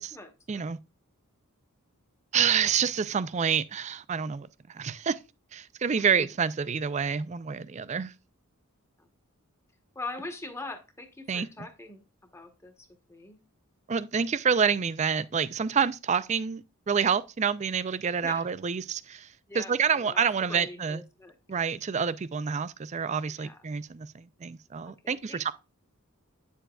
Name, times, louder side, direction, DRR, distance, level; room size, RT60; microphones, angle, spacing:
voice 1, 0.1-0.6 6.0-6.1 9.0-9.1 9.9-12.0 12.3-13.4 18.2-18.5 19.5-21.3 23.4-23.6 25.0-25.5, left 2 dB, 10° left, 1.1 m, -42 dB
voice 2, 2.3-5.2 5.5-8.1 11.3-11.5 13.9-19.3 19.5-21.0 21.5-25.5, right 6 dB, 30° right, 0.4 m, -28 dB
8.9 x 6.9 x 2.3 m
head